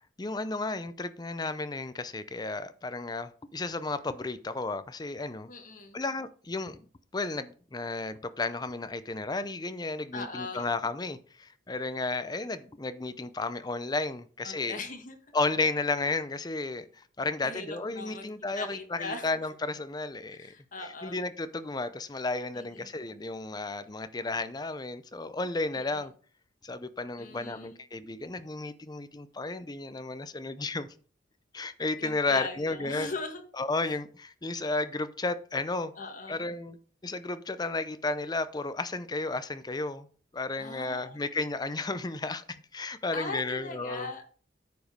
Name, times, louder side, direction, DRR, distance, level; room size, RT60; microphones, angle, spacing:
voice 1, 0.2-5.5 5.9-6.9 7.1-14.8 15.3-20.5 20.8-26.1 26.6-30.9 31.5-33.1 33.6-35.9 36.3-36.8 37.0-40.1 40.3-44.1, left 3 dB, 20° left, 0.6 m, -33 dB
voice 2, 5.5-6.0 10.1-10.7 14.4-15.2 17.4-18.2 18.5-19.3 20.3-21.2 22.5-22.8 25.7-26.1 27.2-27.8 32.0-33.4 36.0-36.5 40.6-41.1 43.1-44.2, left 3 dB, 45° left, 1.6 m, -39 dB
9.3 x 5.0 x 5.2 m
head